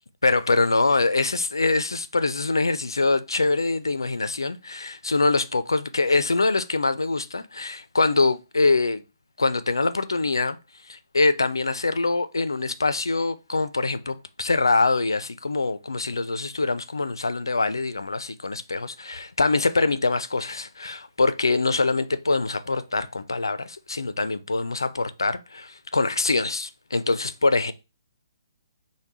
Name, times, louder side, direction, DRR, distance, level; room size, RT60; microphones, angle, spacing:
voice 1, 0.2-9.0 9.4-10.6 10.9-27.7, left 3 dB, 85° left, 0.4 m, -24 dB
5.2 x 2.2 x 3.0 m
figure-of-eight pair, 140°, 2 cm